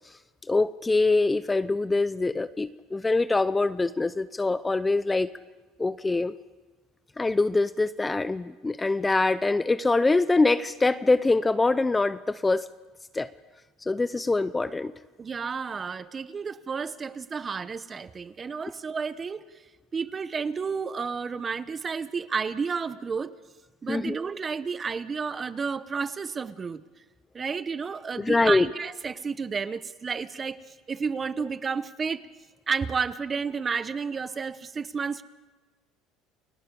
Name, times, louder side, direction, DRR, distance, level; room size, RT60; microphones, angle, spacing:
voice 1, 0.5-5.3 5.8-6.3 7.2-12.7 13.1-13.3 13.9-14.9 23.9-24.1 28.2-28.7, left 3 dB, 15° left, 15 dB, 0.6 m, -24 dB
voice 2, 15.2-19.4 19.9-23.3 23.8-26.8 27.3-30.6 30.9-32.2 32.7-35.2, right 5 dB, 30° right, 14 dB, 0.9 m, -31 dB
29.5 x 17.5 x 5.3 m, 1.3 s
supercardioid pair, 105°, 0 cm